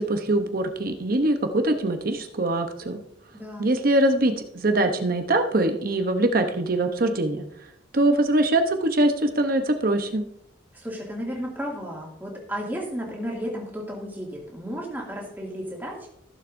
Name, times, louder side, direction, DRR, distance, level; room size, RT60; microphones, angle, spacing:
voice 1, 0.0-3.0 3.6-7.4 7.9-10.2, right 1 dB, 45° right, 6 dB, 0.9 m, -23 dB
voice 2, 3.3-3.7 10.7-16.1, equal, 10° right, -2 dB, 2.3 m, -33 dB
15.0 x 7.3 x 2.6 m, 0.73 s
head